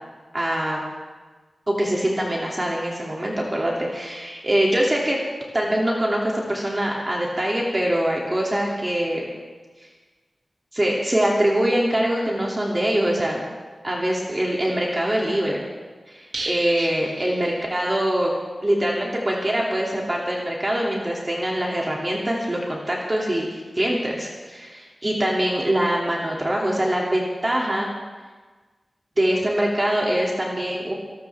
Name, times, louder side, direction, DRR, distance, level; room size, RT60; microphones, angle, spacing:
voice 1, 0.3-0.8 1.7-5.2 5.5-9.2 10.7-13.5 13.8-15.7 16.1-18.3 18.6-27.9 29.2-30.9, right 1 dB, 30° right, -3 dB, 2.5 m, -23 dB
sound 1, 16.3-18.1 18.4-18.5 18.8-18.9, right 2 dB, 80° right, 2.4 m, -35 dB
24.5 x 13.5 x 3.5 m, 1.4 s
wide cardioid pair, 65°, 0 cm